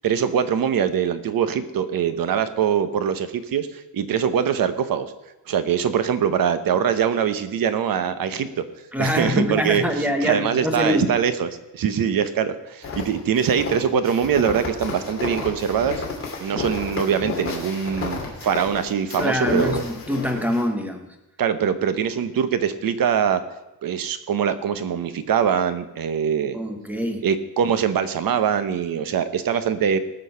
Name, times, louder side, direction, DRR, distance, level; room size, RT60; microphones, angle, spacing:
voice 1, 0.0-5.1 5.5-8.6 9.0-16.0 16.4-19.8 21.4-23.4 23.8-26.6 27.2-30.0, right 8 dB, 65° right, 11 dB, 1.0 m, -23 dB
voice 2, 8.9-11.1 19.2-21.1 26.5-27.3, left 1 dB, 5° right, 5 dB, 1.1 m, -24 dB
sound 1, 12.8-20.6, left 4 dB, 35° left, 2.5 m, -31 dB
19.0 x 6.3 x 5.7 m, 0.97 s
wide cardioid pair, 180°, 37 cm